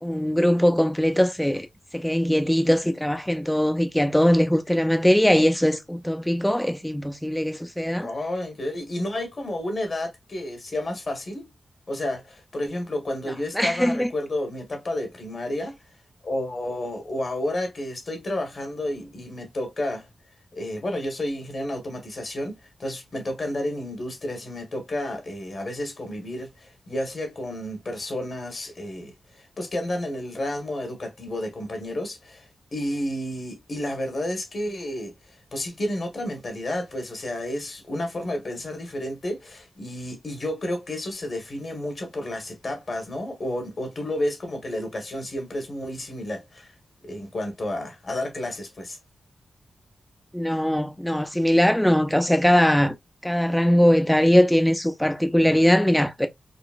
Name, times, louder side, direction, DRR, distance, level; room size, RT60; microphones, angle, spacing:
voice 1, 0.0-1.7 1.9-8.1 13.5-14.1 50.3-52.9 53.2-56.3, equal, 5° left, 0.5 m, -21 dB
voice 2, 8.0-11.4 11.9-15.8 16.2-20.1 20.5-35.1 35.5-46.7 47.0-49.0, left 1 dB, 55° left, 1.3 m, -31 dB
3.9 x 2.1 x 2.4 m
cardioid pair, 45°, 0 cm